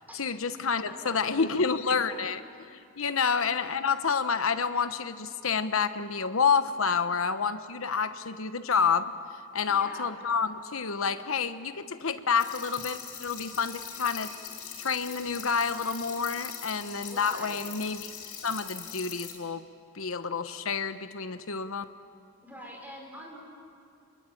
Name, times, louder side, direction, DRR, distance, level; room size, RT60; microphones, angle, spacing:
voice 1, 0.0-2.4 2.7-9.1 9.5-14.3 14.8-18.1 18.4-19.6 19.9-21.8, left 5 dB, 70° left, 11 dB, 1.1 m, -29 dB
voice 2, 0.9-1.5 1.8-1.9 3.3-3.5 9.7-10.1 17.1-17.6 22.4-23.4, equal, 10° right, -1 dB, 5.3 m, -44 dB
sound 1, 12.4-19.3, left 8 dB, 90° left, 6.1 m, -42 dB
27.0 x 22.0 x 8.7 m, 2.3 s
head